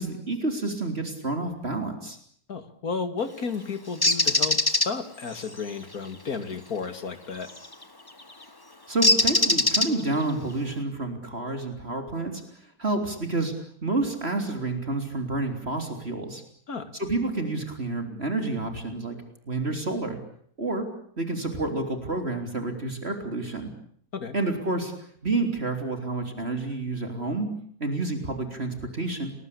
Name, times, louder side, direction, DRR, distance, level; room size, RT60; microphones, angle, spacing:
voice 1, 0.0-2.2 8.9-13.5 13.8-16.4 16.9-19.2 19.4-20.2 20.6-20.9 21.2-23.7 24.3-24.9 25.2-27.5 27.8-29.3, right 2 dB, 40° right, 5 dB, 3.9 m, -29 dB
voice 2, 2.5-7.5 16.7-16.9 24.1-24.3, left 5 dB, 70° left, 10 dB, 2.8 m, -33 dB
Bird, 4.0-4.9 7.5-7.7 9.0-10.2, left 2 dB, 15° left, 1.4 m, -21 dB
30.0 x 20.5 x 8.6 m, 0.64 s
omnidirectional pair, 1.6 m